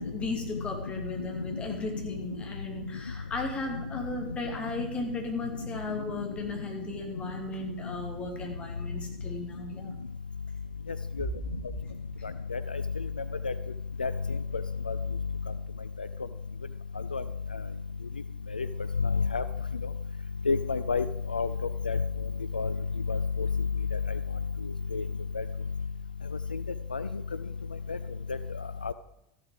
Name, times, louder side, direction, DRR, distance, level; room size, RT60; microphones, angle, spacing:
voice 1, 0.0-9.9, left 2 dB, 25° left, 2 dB, 2.7 m, -36 dB
voice 2, 20.5-21.0 21.3-21.5 21.9-22.0 22.5-22.7 23.1-23.5 24.9-25.0 25.4-25.5 26.9-27.0 27.9-28.0 28.8-28.9, left 4 dB, 85° left, 13 dB, 0.3 m, -28 dB
13.5 x 7.8 x 5.1 m, 0.80 s
figure-of-eight pair, 80°, 5 cm